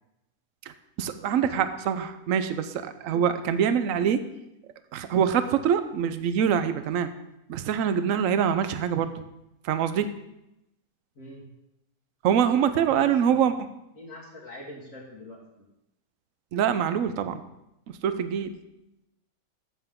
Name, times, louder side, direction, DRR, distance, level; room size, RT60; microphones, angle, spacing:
voice 1, 1.0-4.3 4.9-7.1 7.5-9.1 9.6-10.1 12.2-13.5 16.5-17.4 18.0-18.6, right 8 dB, 70° right, 11 dB, 1.0 m, -24 dB
voice 2, 3.1-3.5 11.2-11.4 12.7-13.5 13.9-15.7, left 1 dB, 60° left, -4 dB, 2.0 m, -44 dB
14.0 x 6.9 x 3.7 m, 0.89 s
omnidirectional pair, 1.5 m